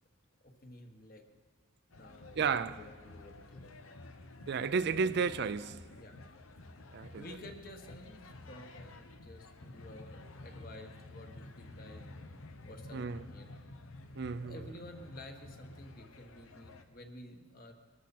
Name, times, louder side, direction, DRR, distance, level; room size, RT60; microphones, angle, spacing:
voice 1, 0.4-1.2 1.9-3.8 5.0-5.1 5.9-6.2 7.1-12.0 12.6-13.5 14.4-17.7, left 1 dB, 45° left, 1.4 m, -51 dB
sound 1, 1.9-16.8, left 2 dB, 85° left, 1.0 m, -51 dB
voice 2, 2.4-2.7 4.5-5.8 6.9-7.2 12.9-13.2 14.2-14.6, right 5 dB, 50° right, 0.4 m, -32 dB
22.0 x 12.5 x 4.3 m
head